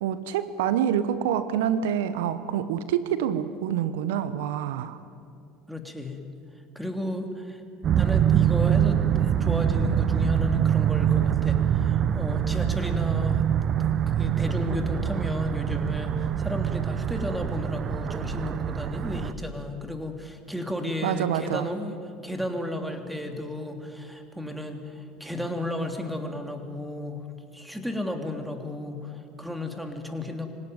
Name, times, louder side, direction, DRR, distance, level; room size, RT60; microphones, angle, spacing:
voice 1, 0.0-5.0 21.0-21.7, right 9 dB, 80° right, 13 dB, 0.9 m, -27 dB
voice 2, 5.7-6.2 6.7-7.6 8.0-13.4 14.2-22.0 22.2-27.3 27.5-30.5, left 1 dB, 5° right, 4 dB, 3.2 m, -33 dB
sound 1, 7.8-19.3, right 9 dB, 45° right, 0.9 m, -24 dB
26.0 x 17.5 x 9.4 m, 2.5 s
hypercardioid pair, 80°, 0 cm